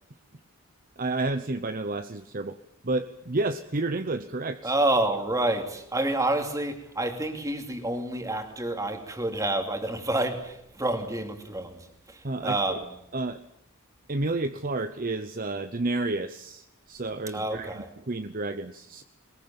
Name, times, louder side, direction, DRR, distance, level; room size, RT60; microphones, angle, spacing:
voice 1, 1.0-2.6 2.8-4.7 12.2-12.9 13.1-13.4 14.1-19.0, right 2 dB, 40° right, 0.8 m, -31 dB
voice 2, 4.6-11.8 12.1-12.8 17.3-17.9, right 1 dB, 15° right, 2.7 m, -28 dB
22.0 x 21.5 x 8.8 m
head